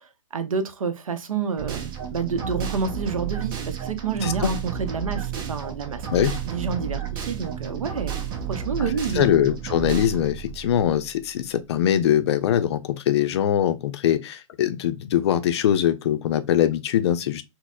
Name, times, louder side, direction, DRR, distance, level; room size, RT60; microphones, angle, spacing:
voice 1, 0.0-8.2 8.5-9.3, right 5 dB, 80° right, 0.6 m, -29 dB
sound 1, 1.6-11.5, right 9 dB, 45° right, 0.8 m, -32 dB
voice 2, 4.2-4.5 6.1-6.4 8.8-17.4, left 10 dB, 50° left, 0.4 m, -22 dB
4.0 x 2.0 x 2.2 m
hypercardioid pair, 120°, 18 cm